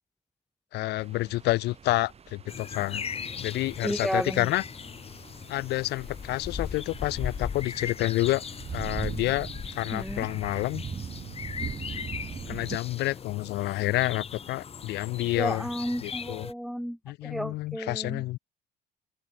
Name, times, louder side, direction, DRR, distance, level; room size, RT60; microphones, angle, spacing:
voice 1, 0.7-3.0 3.4-4.6 5.5-8.4 8.7-10.8 12.5-15.7 16.0-16.5 17.0-18.4, left 18 dB, 85° left, 2.9 m, -29 dB
sound 1, 1.0-12.8, right 6 dB, 35° right, 6.2 m, -41 dB
sound 2, 2.5-16.5, left 6 dB, 35° left, 3.0 m, -39 dB
voice 2, 3.8-4.5 9.9-10.2 15.4-17.0 17.2-18.4, equal, ahead, 1.7 m, -32 dB
open air
cardioid pair, 110°, 17 cm